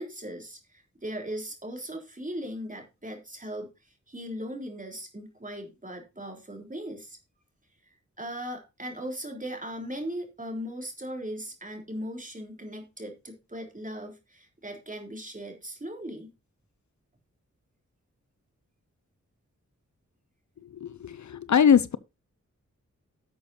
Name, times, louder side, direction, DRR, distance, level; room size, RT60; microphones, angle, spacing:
voice 1, 0.0-7.2 7.9-16.3, equal, 25° right, 3.6 m, -38 dB
voice 2, 20.6-22.0, left 7 dB, 70° left, 0.6 m, -22 dB
11.5 x 6.8 x 4.1 m
wide cardioid pair, 60°, 30 cm